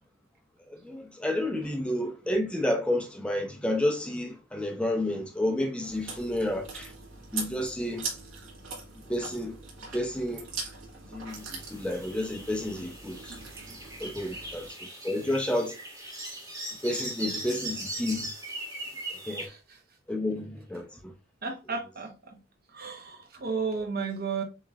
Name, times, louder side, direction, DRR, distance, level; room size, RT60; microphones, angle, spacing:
voice 1, 0.6-6.9 7.3-8.0 9.1-9.6 9.9-10.5 11.1-13.4 14.0-14.7 15.0-15.8 16.8-18.3 19.1-19.5 20.1-21.1, left 1 dB, 5° left, 0.7 m, -30 dB
Chewing mastication, 5.8-14.7, right 4 dB, 75° right, 2.0 m, -41 dB
sound 1, 11.3-19.5, right 1 dB, 15° right, 1.7 m, -40 dB
voice 2, 19.4-19.8 21.4-22.4 22.7-24.4, right 5 dB, 50° right, 1.1 m, -34 dB
7.2 x 3.0 x 2.4 m
head